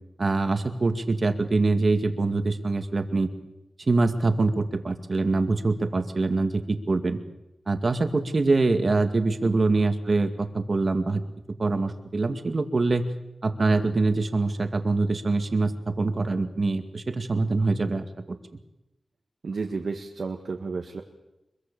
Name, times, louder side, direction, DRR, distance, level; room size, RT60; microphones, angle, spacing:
voice 1, 0.2-3.3 3.9-7.2 7.7-11.2 11.6-13.1 13.4-18.4, right 3 dB, 50° right, 8 dB, 2.2 m, -24 dB
voice 2, 19.4-21.0, right 4 dB, 75° right, 3 dB, 1.8 m, -32 dB
25.5 x 23.0 x 7.0 m, 0.96 s
wide cardioid pair, 85°, 0 cm